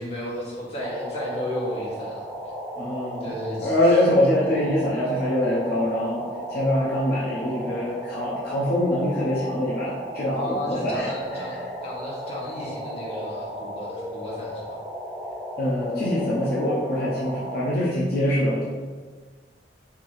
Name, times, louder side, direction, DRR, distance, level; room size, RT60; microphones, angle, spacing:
voice 1, 0.0-2.3 3.2-3.9 4.4-4.5 10.3-14.8, equal, 35° left, -6 dB, 1.3 m, -33 dB
sound 1, 0.8-17.7, equal, ahead, 0.8 m, -35 dB
voice 2, 2.8-3.3 3.6-6.2 6.5-11.1 15.6-18.6, left 1 dB, 60° left, -7 dB, 0.8 m, -24 dB
5.9 x 2.8 x 3.1 m, 1.5 s
head